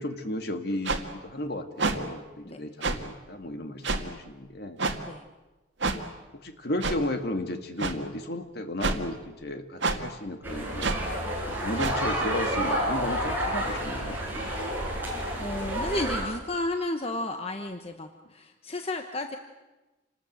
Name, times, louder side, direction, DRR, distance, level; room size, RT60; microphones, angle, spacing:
voice 1, 0.0-4.8 5.9-6.0 6.4-11.0 11.5-14.5, left 1 dB, 55° left, 6 dB, 2.1 m, -34 dB
sound 1, 0.9-1.0 1.8-2.0 2.8-3.0 3.8-4.0 4.8-5.0 5.8-6.0 6.8-7.0 7.8-7.9 8.8-9.0 9.8-10.0 10.8-11.0 11.8-12.0, right 3 dB, 65° right, 2.1 m, -27 dB
sound 2, 10.4-16.2, equal, 10° right, 6.9 m, -30 dB
voice 2, 15.4-19.4, left 2 dB, 30° left, 6 dB, 1.1 m, -33 dB
28.0 x 20.0 x 8.0 m, 1.1 s
head